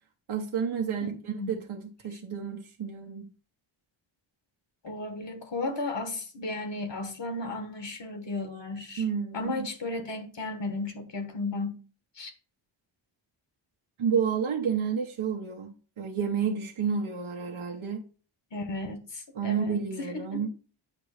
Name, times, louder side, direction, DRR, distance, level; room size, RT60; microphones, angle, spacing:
voice 1, 0.3-3.3 9.0-9.7 14.0-18.0 19.4-20.5, right 6 dB, 80° right, 1.1 m, -30 dB
voice 2, 4.8-9.0 9.3-11.8 12.2-12.3 18.5-20.5, left 2 dB, 60° left, 1.3 m, -34 dB
8.8 x 3.1 x 6.4 m
wide cardioid pair, 125°, 48 cm